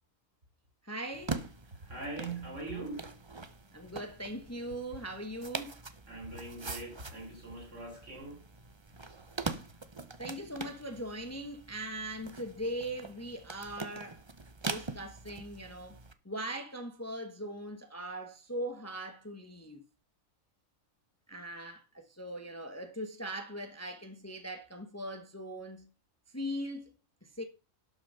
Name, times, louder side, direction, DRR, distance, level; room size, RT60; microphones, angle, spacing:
voice 1, 0.8-1.4 3.7-5.7 10.2-14.2 14.6-19.8 21.3-25.9 26.3-26.9 27.4-27.5, right 1 dB, 10° left, 1.2 m, -40 dB
sound 1, 1.1-16.1, right 3 dB, 25° right, 0.8 m, -43 dB
voice 2, 1.8-3.2 6.1-8.4, right 2 dB, 60° right, 4.1 m, -41 dB
12.0 x 6.3 x 5.6 m
omnidirectional pair, 1.4 m